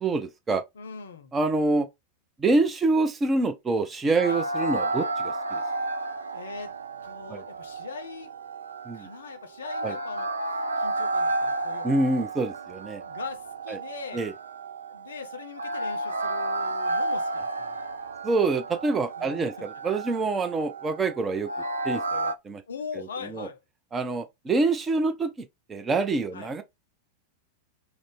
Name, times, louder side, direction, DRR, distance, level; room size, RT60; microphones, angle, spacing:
voice 1, 0.0-0.6 1.3-1.9 2.4-5.6 7.3-7.4 8.9-9.1 9.8-10.0 11.8-13.0 13.7-13.8 14.1-14.3 18.2-21.5 21.8-22.6 23.0-23.5 23.9-25.3 25.7-26.6, right 3 dB, 20° right, 0.5 m, -26 dB
voice 2, 0.8-1.3 4.2-4.4 6.3-6.7 7.0-8.3 8.9-10.3 10.8-12.2 13.0-14.2 14.9-17.8 19.2-19.8 22.7-23.6 26.3-26.5, left 5 dB, 65° left, 0.5 m, -41 dB
sound 1, 4.2-22.3, right 2 dB, 70° right, 0.3 m, -32 dB
2.5 x 2.0 x 3.4 m
figure-of-eight pair, 90°, 0 cm